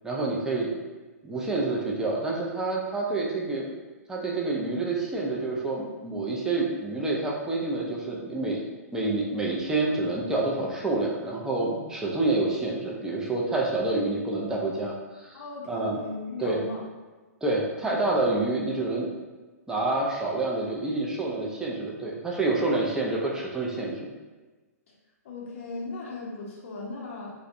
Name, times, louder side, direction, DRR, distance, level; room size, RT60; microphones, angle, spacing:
voice 1, 0.0-0.7 1.2-3.7 4.1-8.6 8.9-15.4 15.7-16.0 16.4-16.6 17.4-19.1 19.7-24.1, right 2 dB, 5° right, -3 dB, 0.3 m, -28 dB
voice 2, 15.3-16.8 25.2-27.3, left 3 dB, 55° left, -3 dB, 0.5 m, -37 dB
2.4 x 2.0 x 2.5 m, 1.3 s
figure-of-eight pair, 120°, 9 cm